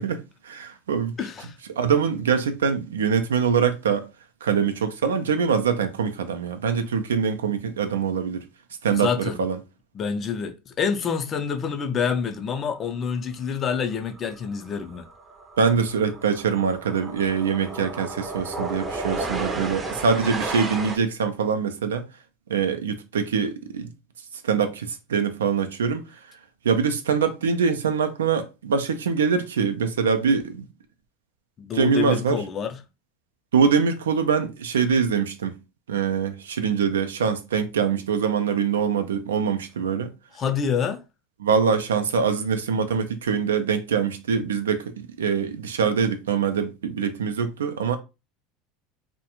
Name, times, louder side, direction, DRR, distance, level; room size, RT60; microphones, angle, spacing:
voice 1, 0.0-1.2 1.7-4.1 4.4-8.4 8.8-9.6 15.6-22.1 22.5-23.9 24.4-26.0 26.6-30.7 31.7-32.4 33.5-35.5 35.9-40.1 41.4-48.0, right 6 dB, 90° right, 0.3 m, -24 dB
voice 2, 1.2-1.5 8.9-9.4 9.9-15.1 31.6-32.8 40.3-41.0, left 6 dB, 35° left, 0.4 m, -27 dB
sound 1, 14.2-14.4 14.7-21.0, right 3 dB, 25° right, 0.5 m, -33 dB
2.4 x 2.1 x 2.8 m
hypercardioid pair, 90°, 0 cm